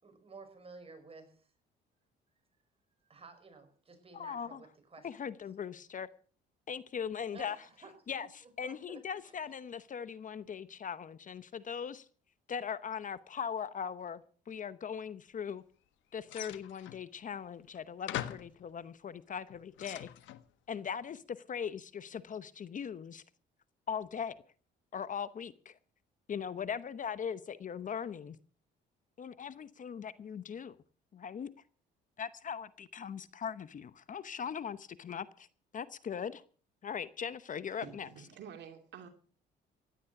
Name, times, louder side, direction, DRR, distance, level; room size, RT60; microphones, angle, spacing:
voice 1, 0.0-1.5 3.1-5.2 7.3-9.5, right 4 dB, 30° right, 7 dB, 5.8 m, -54 dB
voice 2, 4.1-4.6 5.0-6.1 6.7-7.6 8.1-8.3 8.6-12.1 12.5-15.6 16.1-20.1 20.7-23.2 23.9-24.4 24.9-25.8 26.3-28.4 29.2-30.8 31.1-31.5 32.2-35.5 35.7-36.4 36.8-38.1, left 7 dB, 40° left, 15 dB, 0.9 m, -40 dB
sound 1, 16.3-17.0 17.7-17.8 18.1-18.6 19.3-20.4, left 13 dB, 75° left, 1.4 m, -41 dB
voice 3, 37.8-39.1, right 7 dB, 65° right, 6 dB, 2.8 m, -49 dB
17.0 x 11.5 x 5.9 m, 0.43 s
cardioid pair, 100°, 20 cm